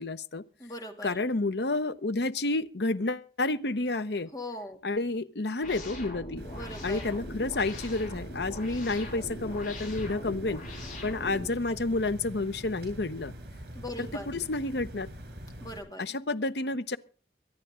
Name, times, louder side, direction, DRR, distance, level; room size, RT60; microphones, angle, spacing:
voice 1, 0.0-0.4 1.0-4.3 4.8-6.4 6.8-10.6 11.0-13.3 14.0-15.1 16.0-17.0, left 2 dB, 70° left, 0.9 m, -30 dB
voice 2, 0.6-1.2 4.3-4.8 6.5-7.0 13.7-14.3 15.6-16.0, left 1 dB, 20° left, 2.5 m, -40 dB
sound 1, 5.6-11.5, left 1 dB, 50° left, 6.2 m, -41 dB
sound 2, 6.4-15.8, equal, 60° right, 7.1 m, -44 dB
24.5 x 9.9 x 3.7 m
head